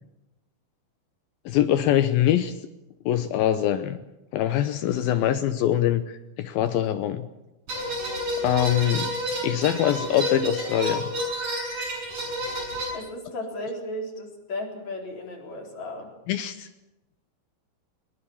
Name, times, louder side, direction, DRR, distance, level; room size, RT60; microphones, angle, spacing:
voice 1, 1.5-2.5 3.1-4.0 4.3-6.0 6.4-7.3 8.4-9.1 9.4-11.1 16.3-16.7, left 11 dB, 90° left, 9 dB, 2.0 m, -23 dB
sound 1, 7.7-12.9, equal, 40° right, 8.2 m, -30 dB
voice 2, 12.9-16.1, left 1 dB, 40° left, 1 dB, 5.0 m, -35 dB
22.5 x 20.5 x 7.2 m, 0.95 s
omnidirectional pair, 5.4 m